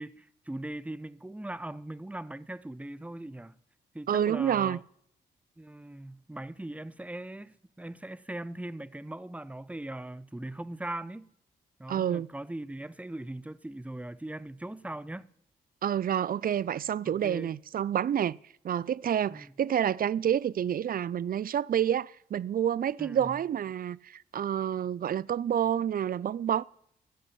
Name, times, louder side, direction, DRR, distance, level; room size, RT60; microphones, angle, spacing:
voice 1, 0.0-3.6 3.9-4.8 5.6-11.3 11.8-15.3 17.0-17.5 19.3-19.5 23.0-23.4, right 1 dB, 5° right, 0.8 m, -40 dB
voice 2, 4.1-4.8 11.9-12.3 15.8-18.4 18.6-26.6, right 9 dB, 50° right, 0.5 m, -28 dB
13.5 x 8.4 x 9.9 m
supercardioid pair, 50°, 19 cm